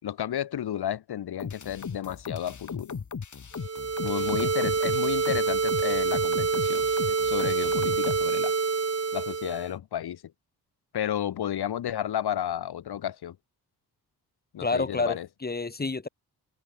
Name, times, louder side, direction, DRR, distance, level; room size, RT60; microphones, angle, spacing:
voice 1, 0.0-2.9 4.0-6.9 7.2-8.5 9.1-10.2 10.9-13.4 14.5-15.3, left 10 dB, 85° left, 6.9 m, -32 dB
sound 1, 1.4-8.2, left 6 dB, 50° left, 7.5 m, -37 dB
sound 2, 3.6-9.7, right 5 dB, 40° right, 4.0 m, -27 dB
voice 2, 14.6-16.1, left 3 dB, 25° left, 2.0 m, -29 dB
open air
cardioid pair, 75°, 38 cm